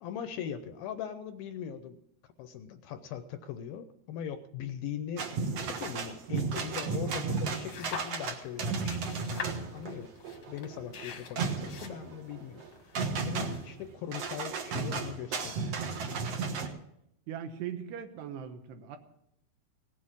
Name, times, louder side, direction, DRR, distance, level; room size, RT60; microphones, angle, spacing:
voice 1, 0.0-2.0 2.4-5.3 5.6-9.2 9.7-10.1 10.5-15.7, left 8 dB, 80° left, 9 dB, 2.2 m, -40 dB
sound 1, 5.2-16.7, right 4 dB, 60° right, 1.7 m, -34 dB
sound 2, 7.5-8.5 8.8-13.9, left 7 dB, 60° left, 1.6 m, -44 dB
voice 2, 17.3-19.0, right 8 dB, 80° right, 7 dB, 3.3 m, -39 dB
18.0 x 8.5 x 7.3 m, 0.77 s
omnidirectional pair, 4.8 m